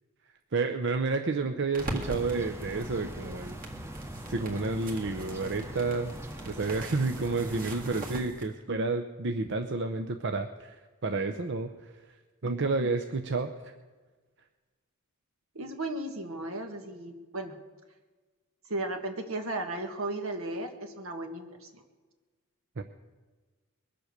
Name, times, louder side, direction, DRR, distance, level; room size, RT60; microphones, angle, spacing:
voice 1, 0.5-3.6 4.3-6.1 6.5-11.7 12.4-13.7 22.8-22.9, right 3 dB, 60° right, 6 dB, 0.7 m, -30 dB
sound 1, 1.7-8.5, right 1 dB, 40° right, 2.0 m, -43 dB
sound 2, 1.8-8.2, right 1 dB, 10° right, 0.9 m, -42 dB
voice 2, 15.6-17.6 18.7-21.8, right 2 dB, 80° right, 5 dB, 1.7 m, -35 dB
22.0 x 7.8 x 6.6 m, 1.3 s
head